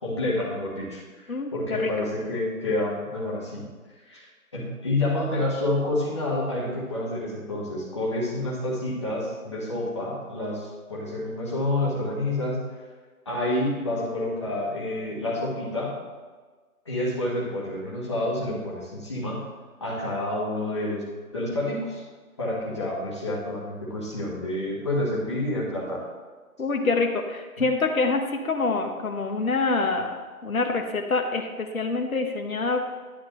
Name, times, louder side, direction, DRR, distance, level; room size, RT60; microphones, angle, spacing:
voice 1, 0.0-3.7 4.1-4.2 4.5-12.6 13.2-16.0 16.8-19.4 19.8-21.0 21.3-22.0 22.4-26.0 27.6-27.7, left 1 dB, 20° left, -6 dB, 1.3 m, -28 dB
voice 2, 1.3-1.9 26.6-30.1 30.4-32.8, left 3 dB, 65° left, 4 dB, 1.1 m, -26 dB
10.5 x 8.2 x 3.1 m, 1.4 s
figure-of-eight pair, 165°, 45 cm